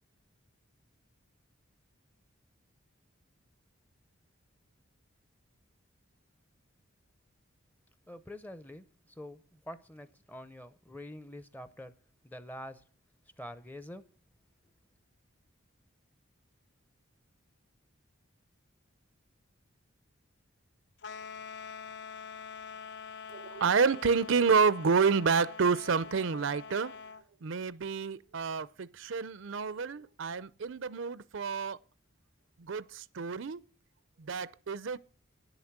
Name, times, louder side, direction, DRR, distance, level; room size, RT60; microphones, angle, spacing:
voice 1, 8.1-8.8 9.2-11.9 12.2-12.8 13.4-14.0, left 1 dB, 10° left, 0.7 m, -46 dB
sound 1, 21.0-27.2, left 6 dB, 55° left, 0.5 m, -45 dB
voice 2, 23.3-26.9 27.4-31.8 32.7-33.6 34.2-35.0, right 5 dB, 65° right, 0.5 m, -29 dB
10.0 x 8.0 x 7.3 m
head